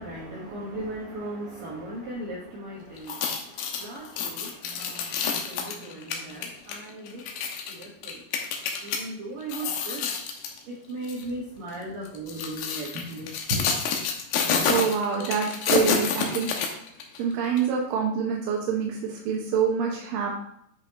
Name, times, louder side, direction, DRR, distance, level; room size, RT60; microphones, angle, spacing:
voice 1, 0.0-7.3 7.7-8.2 8.8-10.1 10.7-13.6, right 1 dB, 65° right, -6 dB, 2.5 m, -37 dB
sound 1, 3.0-9.0 9.4-10.6 11.0-11.2 12.1-17.2 17.6-17.7, left 6 dB, 75° left, 2.5 m, -28 dB
voice 2, 14.7-16.5 17.2-20.3, right 7 dB, 80° right, -1 dB, 2.0 m, -26 dB
10.5 x 5.6 x 3.0 m, 0.71 s
omnidirectional pair, 5.4 m